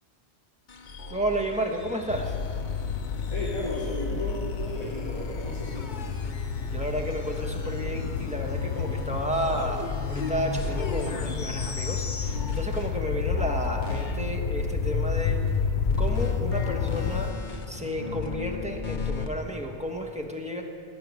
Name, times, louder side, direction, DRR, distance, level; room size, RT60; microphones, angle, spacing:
sound 1, 0.7-13.0 13.2-19.3, left 4 dB, 45° left, 0.9 m, -35 dB
voice 1, 1.1-2.3 6.7-15.4 16.0-17.3 17.7-20.6, right 1 dB, 5° right, 1 dB, 1.3 m, -32 dB
sound 2, 2.1-17.3, left 6 dB, 75° left, 0.8 m, -31 dB
voice 2, 3.3-5.9, left 1 dB, 30° left, -12 dB, 3.5 m, -34 dB
16.5 x 5.9 x 9.5 m, 2.4 s
omnidirectional pair, 1.1 m